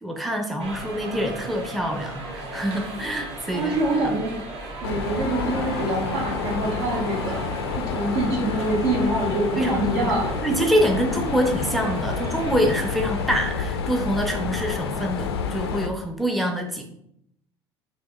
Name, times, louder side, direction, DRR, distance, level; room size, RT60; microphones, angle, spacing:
voice 1, 0.0-3.8 9.6-16.8, equal, ahead, 3 dB, 0.5 m, -25 dB
sound 1, 0.6-13.5, right 2 dB, 50° right, 1.1 m, -36 dB
voice 2, 3.5-4.3 4.8-10.3 14.4-14.5, right 1 dB, 65° right, -2 dB, 1.2 m, -25 dB
Mechanisms, 4.8-15.9, left 5 dB, 75° left, 0.4 m, -29 dB
5.3 x 2.8 x 2.3 m, 0.75 s
figure-of-eight pair, 65°, 14 cm